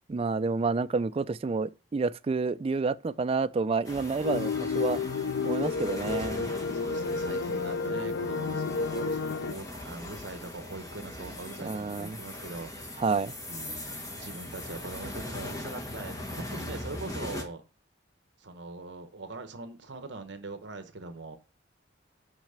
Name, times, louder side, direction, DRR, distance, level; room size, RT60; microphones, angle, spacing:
voice 1, 0.1-5.0 5.4-6.5 11.6-12.2 13.0-13.3, right 4 dB, 30° right, 0.3 m, -29 dB
sound 1, 3.8-17.4, left 1 dB, 20° left, 1.5 m, -40 dB
sound 2, 4.2-9.5, left 4 dB, 75° left, 0.4 m, -31 dB
voice 2, 6.7-12.9 13.5-17.6 18.4-21.4, right 3 dB, 60° right, 1.1 m, -42 dB
6.1 x 5.7 x 6.7 m
head